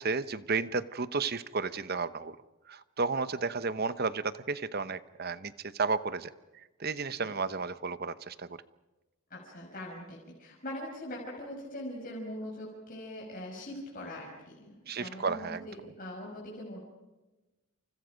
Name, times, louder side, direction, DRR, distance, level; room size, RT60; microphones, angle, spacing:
voice 1, 0.0-2.4 2.7-6.3 6.6-8.6 14.9-15.7, right 4 dB, 45° right, 14 dB, 0.9 m, -33 dB
voice 2, 9.3-16.8, left 1 dB, 40° left, -3 dB, 5.8 m, -42 dB
29.0 x 28.5 x 5.2 m, 1.1 s
head